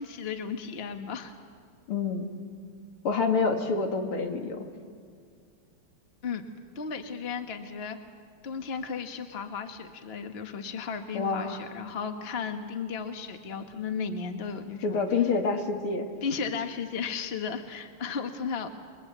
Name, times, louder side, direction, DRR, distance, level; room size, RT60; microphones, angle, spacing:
voice 1, 0.0-1.3 6.2-6.4 6.7-8.0 8.4-15.0 16.2-18.7, left 6 dB, 30° left, 6 dB, 1.5 m, -34 dB
voice 2, 1.9-2.3 3.0-4.7 11.1-11.6 14.8-16.1, left 4 dB, 80° left, 3 dB, 3.0 m, -27 dB
28.5 x 23.0 x 8.1 m, 2.2 s
omnidirectional pair, 2.4 m